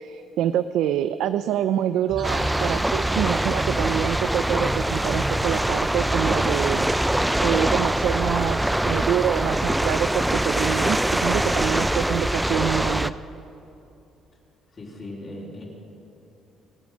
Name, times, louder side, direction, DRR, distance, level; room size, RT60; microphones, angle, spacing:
voice 1, 0.0-6.9 7.4-13.1, right 10 dB, 80° right, 12 dB, 0.4 m, -26 dB
sound 1, 2.1-9.7, right 2 dB, 45° right, 3.8 m, -37 dB
sound 2, 2.2-13.1, right 1 dB, 5° right, 0.4 m, -23 dB
voice 2, 14.7-15.7, left 1 dB, 35° left, -4 dB, 3.6 m, -38 dB
25.0 x 8.9 x 6.3 m, 2.8 s
cardioid pair, 125°, 0 cm